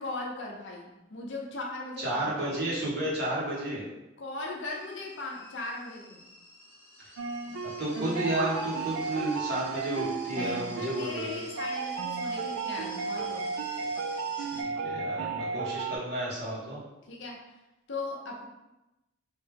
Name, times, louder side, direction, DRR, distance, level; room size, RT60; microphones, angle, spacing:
voice 1, 0.0-2.5 4.2-6.2 10.3-13.5 17.1-17.4 17.9-18.5, left 2 dB, 60° left, -1 dB, 0.7 m, -38 dB
voice 2, 2.0-3.8 7.8-11.4 14.4-16.8, right 1 dB, 55° right, -7 dB, 1.3 m, -32 dB
sound 1, 4.7-14.6, left 1 dB, 15° left, 1.1 m, -49 dB
sound 2, 7.2-16.0, right 5 dB, 80° right, 0.3 m, -34 dB
sound 3, 7.9-8.6, right 3 dB, 20° right, 0.9 m, -38 dB
3.3 x 2.7 x 3.5 m, 0.99 s
head